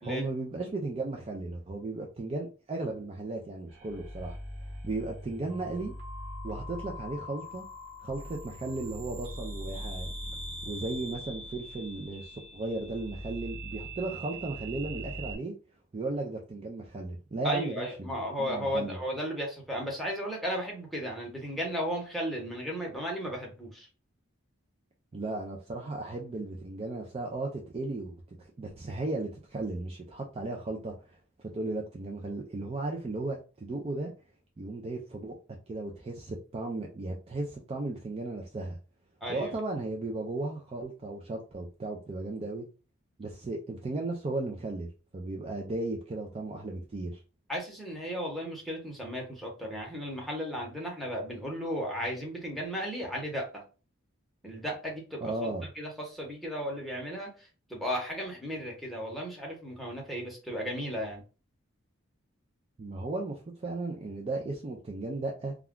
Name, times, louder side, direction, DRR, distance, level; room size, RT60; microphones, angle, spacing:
voice 1, 0.0-4.4 4.8-5.9 6.4-7.6 8.0-10.1 10.7-15.5 15.9-18.1 18.4-19.0 25.1-30.9 31.5-34.1 34.6-35.4 35.7-38.8 39.3-42.6 43.2-47.2 55.2-55.6 62.8-65.5, right 2 dB, 30° right, 0.4 m, -35 dB
sound 1, 3.7-15.4, equal, 85° right, 1.1 m, -41 dB
voice 2, 17.4-23.9 39.2-39.5 47.5-53.6 54.4-61.2, equal, ahead, 0.8 m, -35 dB
2.3 x 2.2 x 3.5 m
head